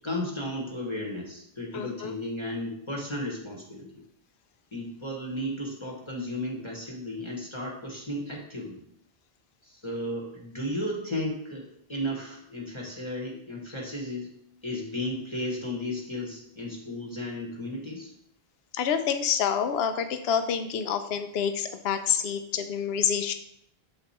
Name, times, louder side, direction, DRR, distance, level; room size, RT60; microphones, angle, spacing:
voice 1, 0.0-3.9 4.7-8.8 9.6-14.3 14.6-18.1, left 1 dB, 30° left, -2 dB, 1.1 m, -34 dB
voice 2, 1.7-2.2 18.7-23.3, left 8 dB, 80° left, 9 dB, 0.8 m, -27 dB
7.0 x 4.0 x 4.1 m, 0.73 s
omnidirectional pair, 1.0 m